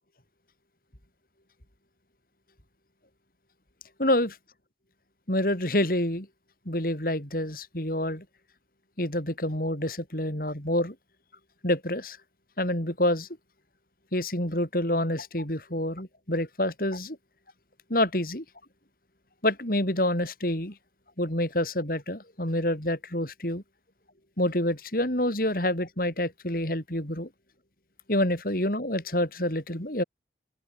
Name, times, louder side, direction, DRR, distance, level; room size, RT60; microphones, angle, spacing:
voice 1, 4.0-4.3 5.3-6.3 6.7-8.2 9.0-10.9 11.6-12.2 12.6-13.3 14.1-17.2 17.9-18.4 19.4-20.7 21.2-23.6 24.4-27.3 28.1-30.0, left 1 dB, 50° left, 6.0 m, -27 dB
head